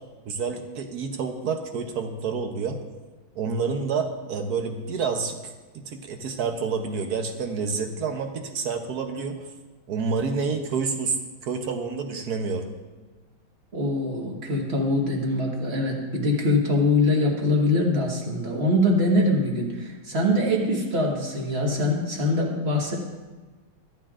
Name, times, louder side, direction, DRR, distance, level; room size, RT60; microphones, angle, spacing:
voice 1, 0.3-2.8 3.3-9.5 9.9-12.7, right 5 dB, 60° right, 5 dB, 1.0 m, -28 dB
voice 2, 13.7-23.0, left 1 dB, 35° right, -1 dB, 1.4 m, -23 dB
14.5 x 8.8 x 2.4 m, 1.3 s
omnidirectional pair, 2.3 m